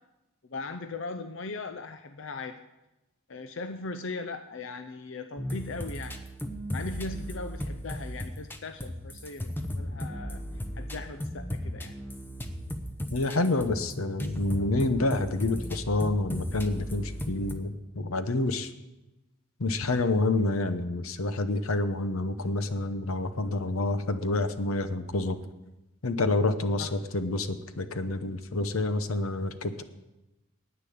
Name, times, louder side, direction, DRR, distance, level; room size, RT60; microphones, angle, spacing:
voice 1, 0.5-2.6 3.3-6.2 6.7-10.4 10.8-11.9 26.8-26.9, left 3 dB, 65° left, 9 dB, 0.6 m, -39 dB
sound 1, 5.4-17.5, equal, 10° left, 0.8 m, -36 dB
voice 2, 13.1-18.7 19.6-25.4 26.0-29.8, left 2 dB, 85° left, 11 dB, 0.9 m, -28 dB
10.0 x 9.1 x 8.6 m, 1.0 s
head